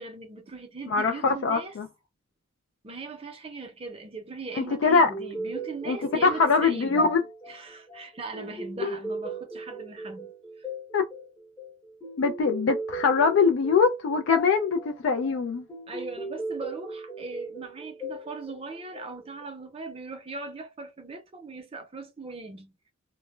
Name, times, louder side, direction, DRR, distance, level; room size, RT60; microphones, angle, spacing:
voice 1, 0.0-1.7 2.8-7.1 7.5-10.3 10.6-10.7 15.9-22.7, right 3 dB, 30° right, 0.5 m, -39 dB
voice 2, 0.9-1.9 4.8-5.1 5.9-6.0 6.2-7.2 8.8-8.9 10.9-11.0 12.2-15.6, left 5 dB, 70° left, 0.3 m, -22 dB
sound 1, 4.7-19.4, right 1 dB, 15° left, 0.7 m, -38 dB
2.1 x 2.1 x 3.0 m
head